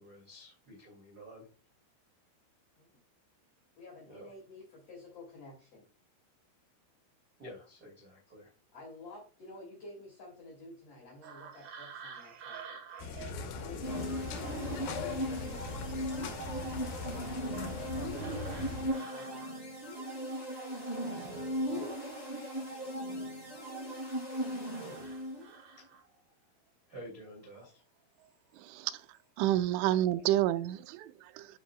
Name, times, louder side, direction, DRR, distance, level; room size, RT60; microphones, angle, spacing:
voice 1, 0.0-1.5 4.1-4.3 7.4-8.5 21.2-21.3 21.7-22.0 25.8-25.9 26.9-27.8 29.8-29.9, equal, 30° right, 1.8 m, -50 dB
voice 2, 3.8-5.8 8.7-12.8 13.5-17.5 17.9-19.4, left 2 dB, 40° left, 2.5 m, -50 dB
sound 1, 11.2-21.2 21.5-23.5 24.0-26.3 27.5-27.7 28.2-28.6 28.9-29.2, right 6 dB, 65° right, 2.1 m, -53 dB
sound 2, 13.0-18.9, left 4 dB, 85° left, 2.1 m, -40 dB
sound 3, 13.8-25.6, equal, 15° left, 3.5 m, -38 dB
voice 3, 28.6-29.0 29.4-31.5, right 13 dB, 85° right, 2.9 m, -29 dB
12.0 x 5.1 x 2.3 m
omnidirectional pair, 5.6 m